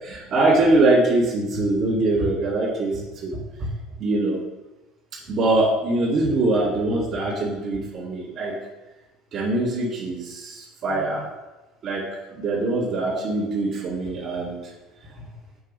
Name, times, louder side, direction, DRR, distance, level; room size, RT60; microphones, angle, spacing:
voice 1, 0.0-3.7 4.0-4.4 5.3-8.6 9.3-11.3 11.8-12.0 12.4-14.6, right 2 dB, 45° right, -5 dB, 2.0 m, -23 dB
7.2 x 3.5 x 5.5 m, 1.1 s
cardioid pair, 135°, 0 cm